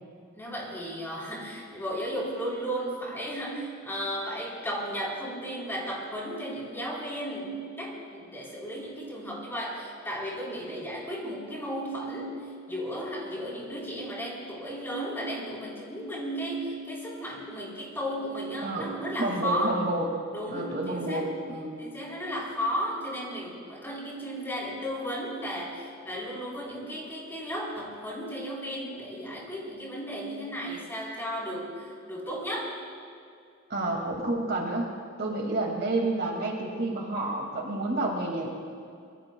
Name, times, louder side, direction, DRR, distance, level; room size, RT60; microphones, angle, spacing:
voice 1, 0.4-19.8 20.3-21.3 21.8-32.7, equal, 10° left, -4 dB, 4.0 m, -34 dB
voice 2, 19.2-20.1 20.5-21.8 33.7-34.9 35.2-38.5, right 2 dB, 55° right, 0 dB, 2.2 m, -29 dB
25.5 x 21.5 x 2.3 m, 2.4 s
head